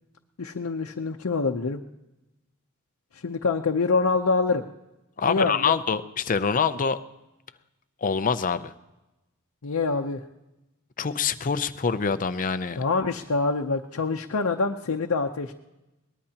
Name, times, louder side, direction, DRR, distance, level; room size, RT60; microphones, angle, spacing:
voice 1, 0.4-1.8 3.1-4.7 5.2-5.8 9.6-10.2 12.8-15.5, left 4 dB, 90° left, 2 dB, 0.7 m, -25 dB
voice 2, 5.2-7.0 8.0-8.7 11.0-12.8, left 6 dB, 40° left, 12 dB, 0.5 m, -25 dB
22.0 x 19.5 x 2.9 m, 1.0 s
head